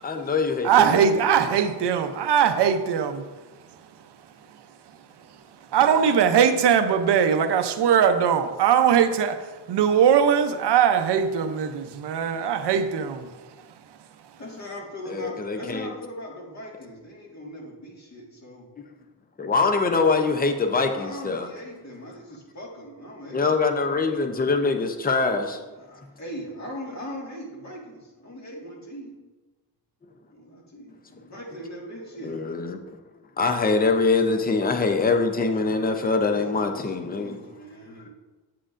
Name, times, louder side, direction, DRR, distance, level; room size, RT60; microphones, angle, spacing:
voice 1, 0.0-1.0 15.1-15.9 19.4-21.5 23.3-25.6 32.2-32.8 33.4-37.4, left 4 dB, 25° left, 5 dB, 0.6 m, -23 dB
voice 2, 0.6-3.3 5.3-13.4, right 8 dB, 85° right, 8 dB, 0.7 m, -21 dB
voice 3, 14.4-18.7 20.9-23.4 25.5-29.1 30.3-32.3 36.4-38.1, equal, 40° left, -2 dB, 1.8 m, -40 dB
8.4 x 7.6 x 2.5 m, 1.2 s
wide cardioid pair, 140°, 40 cm